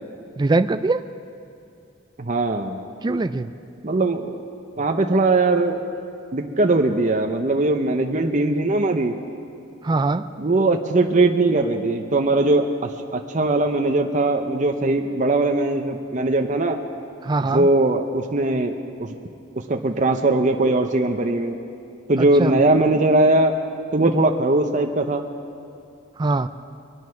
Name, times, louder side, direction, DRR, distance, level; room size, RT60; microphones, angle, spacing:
voice 1, 0.4-1.0 3.0-3.5 9.8-10.2 17.2-17.7 22.2-22.6 26.2-26.5, right 3 dB, 25° right, 11 dB, 0.3 m, -22 dB
voice 2, 2.2-2.8 3.8-4.4 4.8-5.8 6.3-9.1 10.4-16.8 17.5-18.7 19.0-19.1 19.6-21.6 22.1-23.6 23.9-25.2, right 2 dB, 40° right, 4 dB, 0.7 m, -20 dB
23.5 x 9.5 x 5.8 m, 2.6 s
head